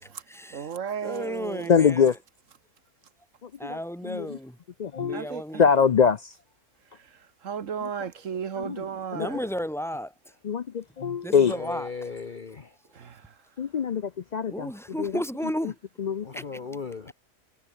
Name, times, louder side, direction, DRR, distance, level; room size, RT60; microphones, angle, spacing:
voice 1, 0.0-0.7 1.0-2.1 3.6-4.6 5.0-5.6 9.1-10.1 11.2-12.1 14.5-15.8 16.3-16.6, equal, ahead, 4.9 m, -33 dB
voice 2, 0.5-1.7 5.1-5.6 7.4-9.4 13.0-13.2, right 7 dB, 65° right, 1.6 m, -34 dB
voice 3, 1.7-2.1 3.6-3.8 4.0-4.4 4.8-5.3 5.6-6.3 7.8-7.9 8.6-8.8 9.2-9.3 10.4-11.5 13.6-14.7 15.0-15.1 15.6-15.7 16.0-16.3, left 6 dB, 70° left, 0.4 m, -23 dB
voice 4, 11.5-12.7 16.2-17.1, left 5 dB, 40° left, 1.1 m, -37 dB
omnidirectional pair, 1.4 m